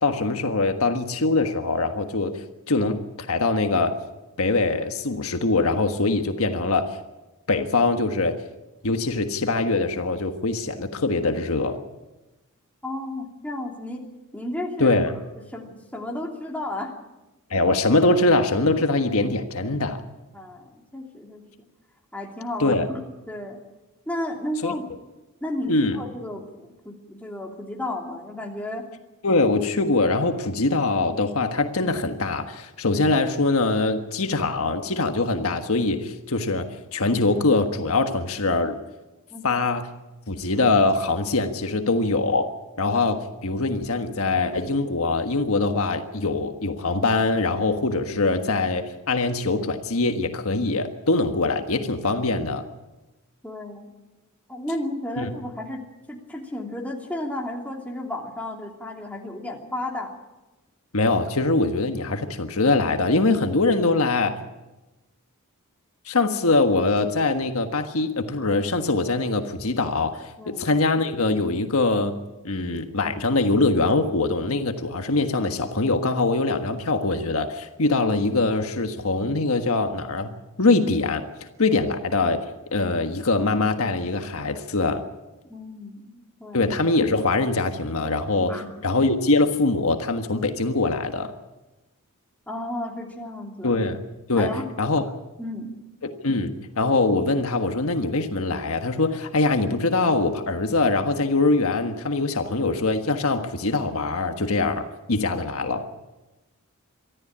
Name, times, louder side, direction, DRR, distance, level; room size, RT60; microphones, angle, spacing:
voice 1, 0.0-3.0 3.3-4.0 4.4-6.9 7.5-8.4 8.8-11.8 14.8-15.1 17.5-20.0 22.6-22.9 24.6-24.7 25.7-26.0 29.2-38.8 39.4-39.8 40.3-42.5 42.8-52.6 55.2-55.3 60.9-64.4 66.0-72.1 72.4-80.3 80.6-81.2 81.6-82.4 82.7-85.0 86.5-91.3 93.6-94.0 94.3-94.5 94.8-95.0 96.0-105.9, left 3 dB, 70° left, 6 dB, 1.5 m, -23 dB
voice 2, 12.8-14.0 14.3-15.0 15.5-16.9 20.3-21.4 22.1-23.6 24.1-24.9 25.4-28.9 39.3-39.5 53.4-53.9 54.5-55.8 56.1-60.1 70.4-70.6 85.4-86.6 88.4-88.8 92.5-93.7 94.4-94.6 95.4-95.8, left 1 dB, 5° left, 0 dB, 2.9 m, -33 dB
24.0 x 14.0 x 8.7 m, 1.1 s
head